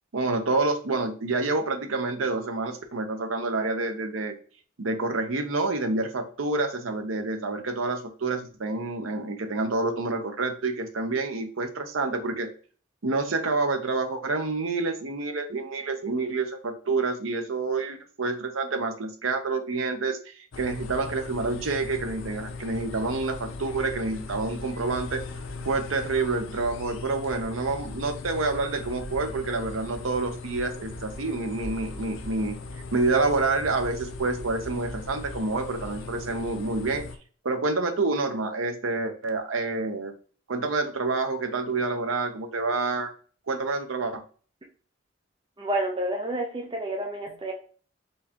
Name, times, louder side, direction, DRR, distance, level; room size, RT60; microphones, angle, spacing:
voice 1, 0.1-4.3 4.8-12.5 13.0-25.2 25.6-32.6 32.9-37.0 37.4-40.1 40.5-43.1 43.5-44.2, right 3 dB, 85° right, 7 dB, 0.8 m, -28 dB
sound 1, 20.5-37.2, left 3 dB, 75° left, 0.6 m, -38 dB
voice 2, 45.6-47.5, right 1 dB, 25° right, 1 dB, 0.5 m, -29 dB
4.5 x 3.3 x 2.9 m, 0.41 s
head